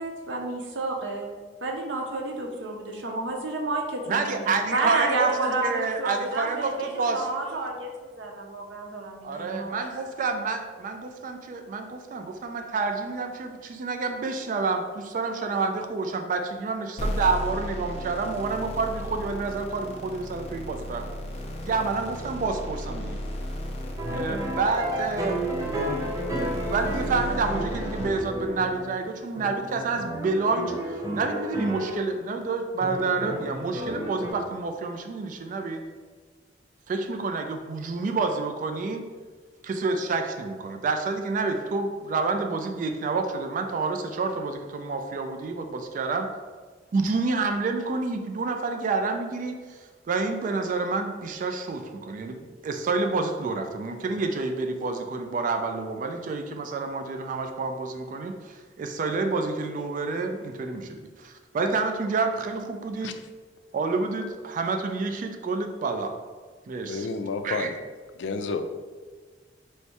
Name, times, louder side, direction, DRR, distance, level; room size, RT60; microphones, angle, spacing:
voice 1, 0.0-1.3 1.6-4.4 4.7-10.0, right 2 dB, 90° right, 1 dB, 0.7 m, -30 dB
voice 2, 4.1-7.3 9.2-21.2 21.6-23.2 24.1-26.1 26.7-35.8 36.9-39.0 39.6-46.3 46.9-63.2 63.7-66.1 66.7-67.1 67.4-67.7, right 4 dB, 45° right, 5 dB, 0.3 m, -29 dB
sound 1, 17.0-28.1, left 1 dB, 35° left, 0.5 m, -35 dB
sound 2, 24.0-29.0 29.3-32.1 32.8-34.3, right 1 dB, 20° right, 0.6 m, -32 dB
voice 3, 66.8-67.7 68.2-68.8, left 4 dB, 80° left, 8 dB, 0.4 m, -30 dB
3.2 x 2.7 x 4.5 m, 1.5 s
head